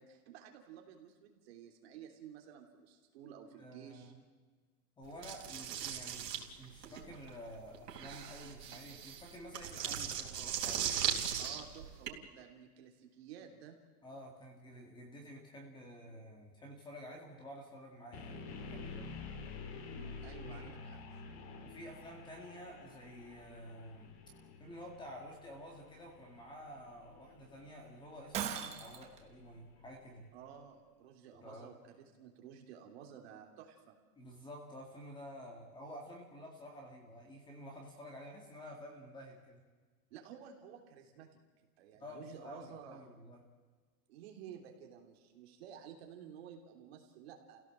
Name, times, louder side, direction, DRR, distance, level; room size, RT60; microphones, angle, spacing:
voice 1, 0.0-4.1 11.4-13.8 19.9-21.2 30.3-33.9 40.1-41.3 41.8-43.1 44.1-47.6, right 8 dB, 40° right, 3 dB, 3.3 m, -53 dB
voice 2, 3.6-4.1 5.0-11.4 14.0-19.1 20.4-20.7 21.6-24.1 24.6-30.3 31.3-31.7 34.2-39.6 42.0-43.4, equal, 10° left, 2 dB, 2.0 m, -50 dB
sound 1, 5.2-12.1, right 8 dB, 85° right, 3.8 m, -38 dB
sound 2, 18.1-30.1, left 4 dB, 40° left, 2.6 m, -50 dB
Shatter, 28.3-29.2, right 9 dB, 15° right, 1.1 m, -38 dB
29.5 x 16.5 x 7.6 m, 1.4 s
supercardioid pair, 175°, 47 cm